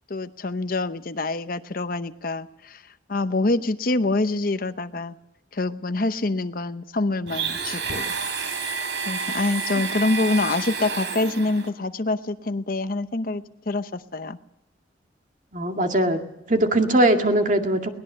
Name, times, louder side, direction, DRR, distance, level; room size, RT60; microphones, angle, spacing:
voice 1, 0.1-2.8 3.1-5.2 5.5-8.1 9.1-14.4, left 2 dB, 50° left, 11 dB, 0.8 m, -26 dB
Domestic sounds home sounds, 7.3-11.7, right 5 dB, 80° right, 3.6 m, -29 dB
voice 2, 15.5-16.2 16.5-17.9, right 1 dB, 45° right, 4 dB, 2.2 m, -20 dB
22.0 x 19.5 x 6.8 m, 0.88 s
head